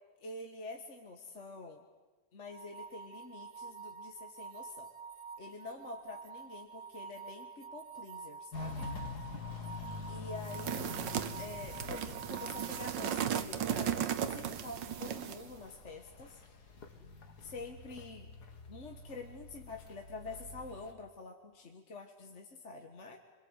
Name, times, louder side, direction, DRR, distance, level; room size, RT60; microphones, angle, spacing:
voice 1, 0.2-1.8 2.3-4.9 5.4-8.9 10.1-11.0 11.4-16.4 17.4-18.3 18.7-23.2, left 3 dB, 45° left, 4 dB, 1.7 m, -47 dB
sound 1, 2.5-13.3, right 5 dB, 50° right, 1.3 m, -48 dB
Walk footsteps, 8.5-20.9, left 4 dB, 60° left, 2.5 m, -47 dB
sound 2, 10.4-15.5, right 9 dB, 85° right, 1.7 m, -36 dB
29.5 x 22.5 x 8.1 m, 1.3 s
omnidirectional pair, 1.9 m